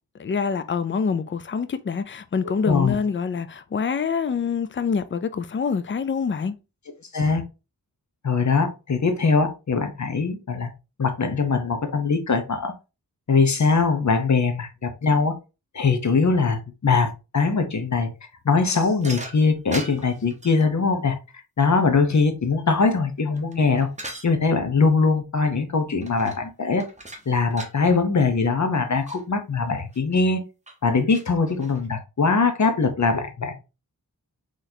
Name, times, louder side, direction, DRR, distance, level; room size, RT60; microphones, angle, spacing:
voice 1, 0.2-6.5, left 5 dB, 35° left, 0.4 m, -26 dB
voice 2, 2.6-2.9 7.1-7.4 8.2-10.7 11.0-12.7 13.3-15.3 15.7-18.1 18.4-21.2 21.6-23.9 24.2-26.8 27.3-30.4 30.8-33.6, left 4 dB, 50° left, 0.8 m, -21 dB
sound 1, 19.0-20.7 23.0-24.3 26.0-26.5 26.8-27.8 28.4-28.5 28.7-29.2 29.9-30.2 30.7-30.8 31.1-31.9, right 2 dB, 20° right, 0.9 m, -39 dB
4.0 x 3.1 x 2.7 m
wide cardioid pair, 85°, 37 cm